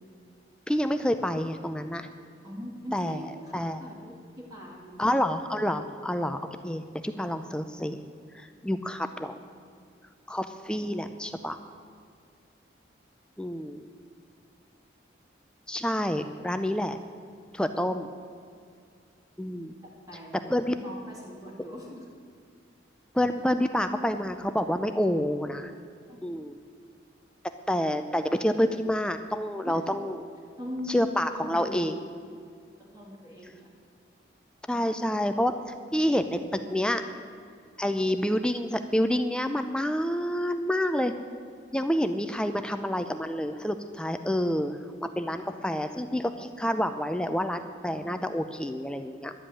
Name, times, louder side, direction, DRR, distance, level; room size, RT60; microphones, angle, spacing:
voice 1, 0.7-2.1 2.9-3.8 5.0-8.0 8.3-9.4 10.3-11.6 13.4-13.9 15.7-17.0 17.5-18.1 19.4-19.7 20.5-20.8 23.1-25.7 26.2-26.6 27.7-30.3 30.9-32.0 34.7-37.0 37.8-41.2 41.7-49.3, equal, 5° left, 8 dB, 0.5 m, -28 dB
voice 2, 2.4-5.2 19.8-20.4 20.8-22.1 26.1-26.3 29.7-29.8 30.6-31.0 31.3-31.9 32.3-32.4 32.8-33.8 45.4-45.7, equal, 20° right, -5 dB, 2.0 m, -41 dB
11.5 x 7.9 x 9.9 m, 2.3 s
head